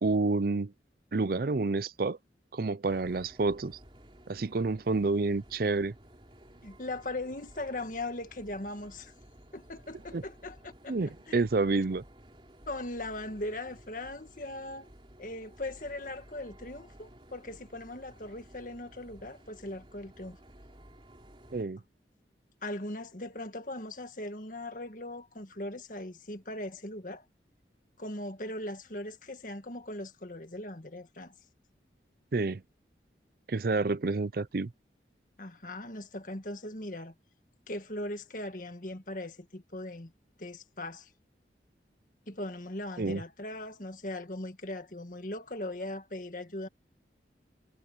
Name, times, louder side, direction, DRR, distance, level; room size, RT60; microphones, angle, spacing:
voice 1, 0.0-0.7 1.1-2.2 2.5-3.8 4.3-5.9 10.1-10.2 10.9-12.0 21.5-21.8 32.3-32.6 33.5-34.7 43.0-43.2, right 3 dB, 55° right, 0.5 m, -29 dB
sound 1, 2.9-21.6, right 1 dB, 30° right, 3.6 m, -55 dB
voice 2, 6.6-9.1 9.5-11.0 11.3-11.4 12.7-14.9 15.2-20.4 22.6-27.3 28.0-31.3 35.4-37.1 37.7-40.1 40.4-41.1 42.3-46.7, left 1 dB, 45° left, 1.9 m, -39 dB
head